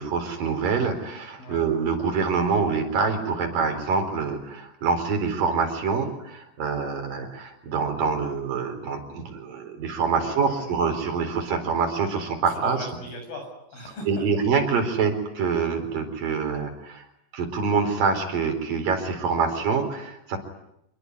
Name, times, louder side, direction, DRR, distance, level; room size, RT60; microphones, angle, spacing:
voice 1, 0.0-12.9 14.1-17.0 17.3-20.4, right 5 dB, 50° right, 5 dB, 5.7 m, -25 dB
voice 2, 10.1-10.7 12.5-14.3, left 1 dB, 55° left, 5 dB, 8.7 m, -39 dB
27.0 x 22.5 x 9.7 m, 0.81 s
omnidirectional pair, 5.0 m